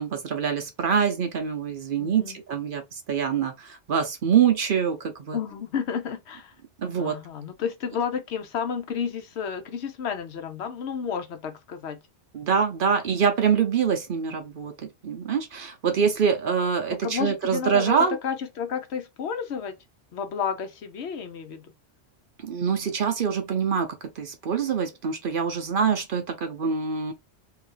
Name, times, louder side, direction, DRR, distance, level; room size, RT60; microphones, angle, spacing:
voice 1, 0.0-5.4 6.8-7.2 12.3-18.2 22.4-27.1, right 7 dB, 55° right, 0.8 m, -25 dB
voice 2, 2.0-2.4 5.3-6.5 7.0-12.0 17.0-19.7 20.1-21.7, left 7 dB, 70° left, 1.0 m, -31 dB
2.7 x 2.7 x 3.8 m
omnidirectional pair, 1.2 m